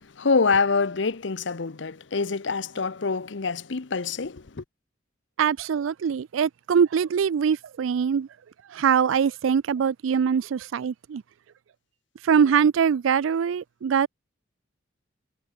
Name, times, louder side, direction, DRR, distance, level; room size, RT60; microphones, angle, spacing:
voice 1, 0.0-4.6, left 4 dB, 65° left, 0.8 m, -26 dB
voice 2, 5.4-8.3 8.7-11.2 12.2-14.1, right 7 dB, 85° right, 0.4 m, -23 dB
head